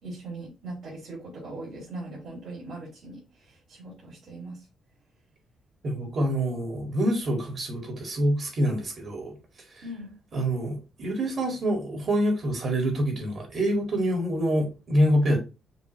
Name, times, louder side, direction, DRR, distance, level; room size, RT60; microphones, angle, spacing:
voice 1, 0.0-4.7 9.8-10.1, right 2 dB, 80° right, 2.8 m, -40 dB
voice 2, 5.8-9.4 9.7-9.8 10.3-15.4, equal, 50° right, 2.0 m, -26 dB
6.6 x 2.4 x 3.0 m
cardioid pair, 90°, 0 cm